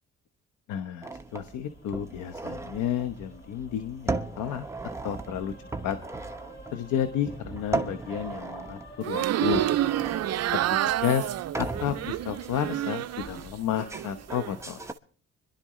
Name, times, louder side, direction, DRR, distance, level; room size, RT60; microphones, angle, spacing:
voice 1, 0.7-4.6 5.0-5.5 5.8-6.0 6.7-9.7 10.3-10.6 11.0-11.3 11.6-14.8, left 9 dB, 80° left, 9 dB, 1.0 m, -31 dB
sound 1, 1.0-14.9, right 3 dB, 10° right, 1.0 m, -37 dB
sound 2, 1.3-14.9, equal, 35° left, 7.6 m, -52 dB
sound 3, 9.0-13.4 13.8-14.5, right 13 dB, 55° right, 0.5 m, -29 dB
25.0 x 11.5 x 3.1 m, 0.43 s
cardioid pair, 90°, 30 cm